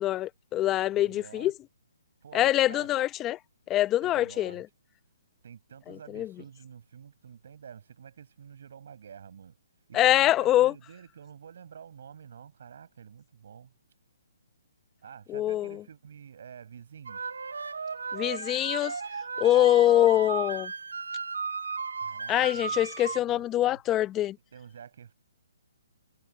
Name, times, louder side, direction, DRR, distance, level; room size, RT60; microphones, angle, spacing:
voice 1, 0.0-1.5 2.3-3.4 3.7-4.7 5.9-6.3 9.9-10.7 15.3-15.8 18.1-18.9 19.4-20.7 22.3-24.4, left 13 dB, 20° left, 0.7 m, -24 dB
voice 2, 0.9-1.5 2.2-2.9 4.0-4.6 5.4-9.6 9.9-13.7 15.0-17.3 22.0-23.8 24.5-25.1, right 7 dB, 60° right, 7.5 m, -49 dB
sound 1, 17.1-23.2, right 5 dB, 85° right, 0.7 m, -35 dB
hypercardioid pair, 150°, 0 cm